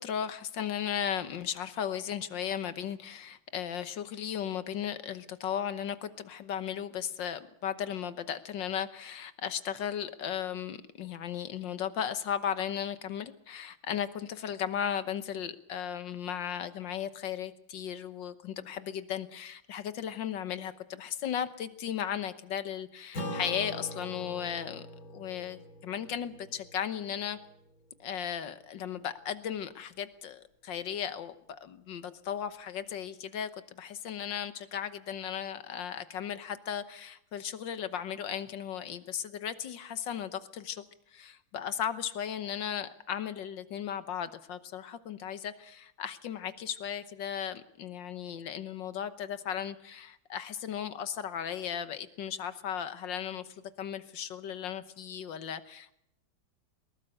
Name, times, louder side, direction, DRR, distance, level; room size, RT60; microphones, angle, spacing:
voice 1, 0.0-24.9 25.1-27.4 28.0-40.8 41.1-55.9, left 9 dB, 65° left, 12 dB, 1.7 m, -36 dB
Acoustic guitar / Strum, 23.1-27.9, left 1 dB, 45° left, 3.2 m, -42 dB
21.5 x 20.0 x 6.5 m, 0.75 s
omnidirectional pair, 2.2 m